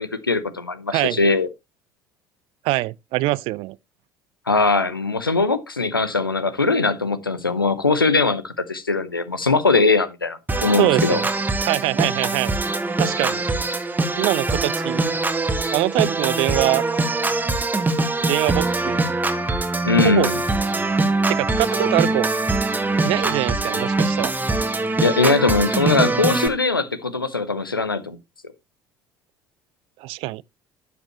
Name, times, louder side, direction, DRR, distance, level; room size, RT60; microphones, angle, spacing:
voice 1, 0.0-1.5 4.5-11.2 19.8-20.4 25.0-28.2, left 3 dB, 90° left, 0.8 m, -21 dB
voice 2, 2.6-3.8 10.8-11.3 11.6-12.6 13.0-13.4 14.2-15.1 15.7-16.8 18.3-19.0 20.0-20.3 21.3-22.3 23.0-24.3 30.0-30.4, right 20 dB, 55° right, 0.4 m, -23 dB
Organ, 10.5-26.5, right 2 dB, 15° right, 1.5 m, -23 dB
12.0 x 7.1 x 2.9 m
figure-of-eight pair, 60°, 11 cm